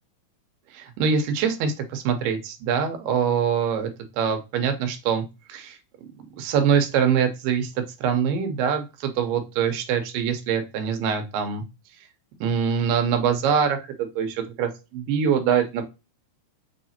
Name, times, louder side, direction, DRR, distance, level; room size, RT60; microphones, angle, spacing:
voice 1, 0.7-3.9 4.2-5.2 5.5-5.8 6.4-7.7 8.0-11.6 12.4-15.8, right 7 dB, 85° right, 6 dB, 2.4 m, -24 dB
6.5 x 2.8 x 2.8 m, 0.26 s
omnidirectional pair, 3.8 m